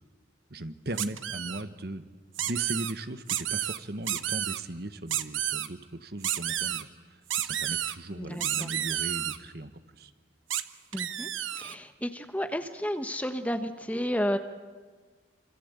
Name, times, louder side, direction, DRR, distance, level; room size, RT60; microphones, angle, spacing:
voice 1, 0.5-2.0 2.4-9.7 10.0-10.1, right 1 dB, 50° right, 11 dB, 1.3 m, -38 dB
sound 1, 1.0-1.6 2.3-2.9 3.3-3.8 4.1-4.6 5.1-5.7 6.2-6.8 7.3-7.9 8.4-9.4 10.5-10.6 10.9-11.7, right 11 dB, 90° right, 1.1 m, -31 dB
voice 2, 8.1-8.7 10.9-11.3 11.5-14.4, equal, 5° left, 8 dB, 1.1 m, -32 dB
27.0 x 25.5 x 8.3 m, 1.5 s
head